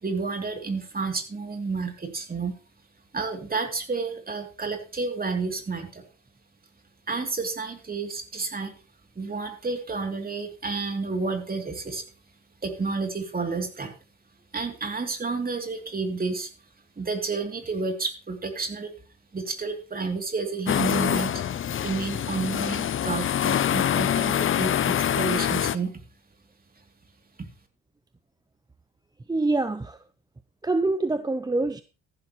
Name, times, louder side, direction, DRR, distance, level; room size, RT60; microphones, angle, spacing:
voice 1, 0.0-2.5 3.1-6.0 7.1-8.7 9.1-12.0 12.6-13.9 14.5-16.5 17.0-18.9 19.3-21.4 21.8-25.9, right 4 dB, 30° right, 3.0 m, -30 dB
sound 1, 20.7-25.8, left 10 dB, 45° left, 0.6 m, -25 dB
voice 2, 29.3-30.0 30.6-31.8, right 2 dB, 15° right, 0.6 m, -25 dB
14.5 x 11.5 x 3.1 m
cardioid pair, 90°, 30 cm